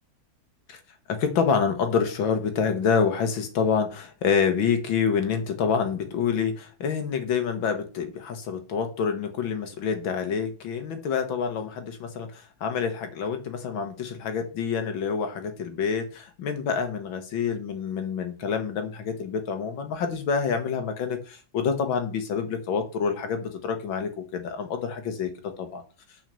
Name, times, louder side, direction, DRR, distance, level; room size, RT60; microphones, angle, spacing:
voice 1, 1.1-25.3 25.6-25.8, left 6 dB, 85° left, 7 dB, 2.0 m, -27 dB
6.1 x 5.6 x 6.9 m, 0.36 s
omnidirectional pair, 2.1 m